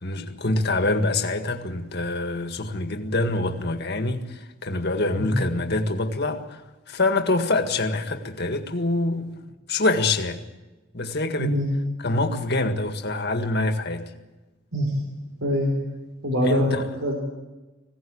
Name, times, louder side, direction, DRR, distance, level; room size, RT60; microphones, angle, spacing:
voice 1, 0.0-6.6 6.9-9.3 9.7-10.4 10.9-11.6 12.0-14.1 16.4-16.9, left 2 dB, 55° left, 1.9 m, -25 dB
voice 2, 11.4-11.7 14.7-14.9 15.4-15.7 16.2-16.7 17.0-17.2, equal, 85° right, 4.0 m, -23 dB
21.0 x 17.0 x 8.7 m
head